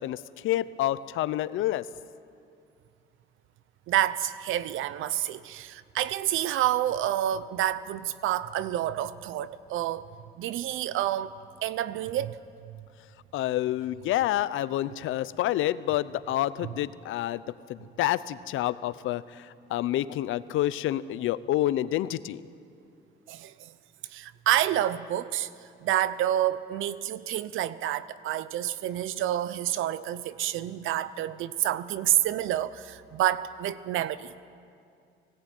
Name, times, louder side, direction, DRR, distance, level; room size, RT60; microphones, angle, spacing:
voice 1, 0.0-1.8 13.3-17.4 17.7-22.4, left 14 dB, 85° left, 0.7 m, -28 dB
voice 2, 3.9-10.1 10.4-11.3 11.6-12.4 23.3-23.5 24.1-25.5 25.8-34.3, right 12 dB, 85° right, 0.7 m, -28 dB
19.5 x 17.0 x 9.1 m
cardioid pair, 90°, 20 cm